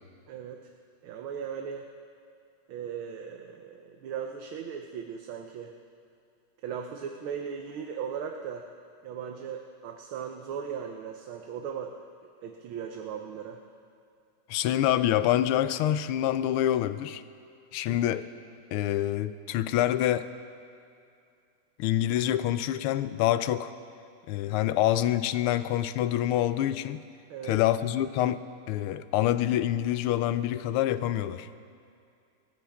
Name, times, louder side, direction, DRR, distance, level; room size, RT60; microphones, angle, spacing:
voice 1, 0.3-0.6 1.0-1.8 2.7-5.7 6.6-8.7 9.0-12.1 12.4-13.6 27.3-27.6, right 7 dB, 75° right, 3 dB, 1.6 m, -37 dB
voice 2, 14.5-17.2 17.7-18.3 18.7-20.3 21.8-23.7 24.3-27.0 27.4-28.4 28.7-31.5, left 12 dB, 85° left, 13 dB, 1.5 m, -26 dB
27.5 x 14.0 x 3.6 m, 2.4 s
omnidirectional pair, 2.4 m